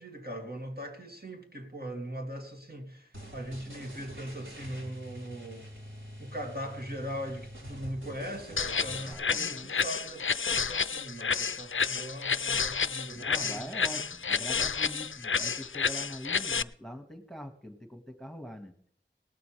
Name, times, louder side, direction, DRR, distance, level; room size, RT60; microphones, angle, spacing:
voice 1, 0.0-5.7 6.2-14.0, equal, 50° right, 2.6 m, -40 dB
sound 1, 3.1-9.1, equal, 75° right, 4.3 m, -46 dB
sound 2, 8.6-16.6, left 6 dB, 75° left, 0.5 m, -30 dB
voice 2, 8.9-9.7 13.1-18.7, equal, ahead, 1.8 m, -43 dB
18.5 x 12.5 x 3.4 m
wide cardioid pair, 45°, 20 cm